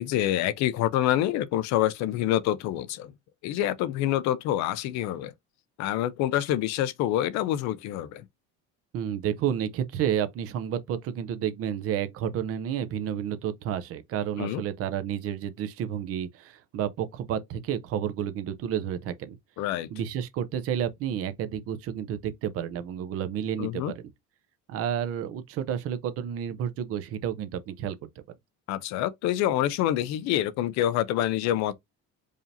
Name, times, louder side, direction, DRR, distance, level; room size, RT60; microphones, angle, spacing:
voice 1, 0.0-3.1 3.4-5.3 5.8-8.2 14.4-14.6 19.6-19.9 23.6-23.9 28.7-31.7, left 12 dB, 60° left, 0.5 m, -26 dB
voice 2, 8.9-19.4 19.9-24.0 24.7-28.0, right 9 dB, 50° right, 0.6 m, -31 dB
4.9 x 2.7 x 2.6 m
cardioid pair, 160°, 31 cm